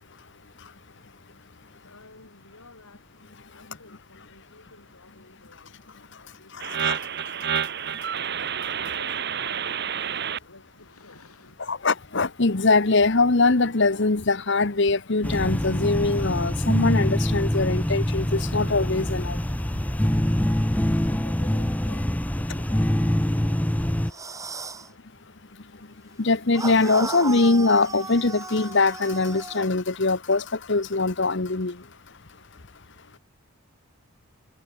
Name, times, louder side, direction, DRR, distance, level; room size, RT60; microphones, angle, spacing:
voice 1, 1.8-3.1 3.5-8.5 8.8-11.7 21.0-25.0, left 2 dB, 85° left, 7.1 m, -53 dB
voice 2, 6.5-7.0 11.7-19.4 19.7-19.8 25.7-25.9 26.2-31.9, left 3 dB, 55° left, 1.1 m, -22 dB
sound 1, 6.6-10.4, right 8 dB, 50° right, 1.4 m, -29 dB
sound 2, 15.2-24.1, equal, 5° left, 0.6 m, -24 dB
sound 3, 24.1-24.9 26.5-29.7, right 3 dB, 15° right, 2.3 m, -35 dB
head